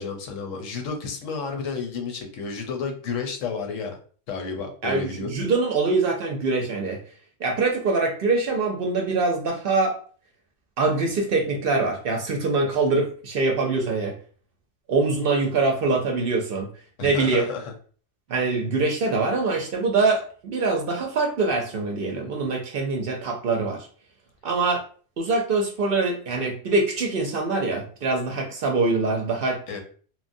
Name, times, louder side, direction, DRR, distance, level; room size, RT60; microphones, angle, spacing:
voice 1, 0.0-3.9 4.3-5.3 17.0-17.7 29.7-29.8, left 5 dB, 90° left, 3 dB, 1.0 m, -31 dB
voice 2, 4.8-7.0 7.4-9.9 10.8-14.1 14.9-16.7 17.0-17.5 18.3-23.9 24.4-24.8 25.2-29.6, right 3 dB, 60° right, 2 dB, 0.6 m, -24 dB
3.0 x 2.1 x 2.6 m, 0.43 s
omnidirectional pair, 1.3 m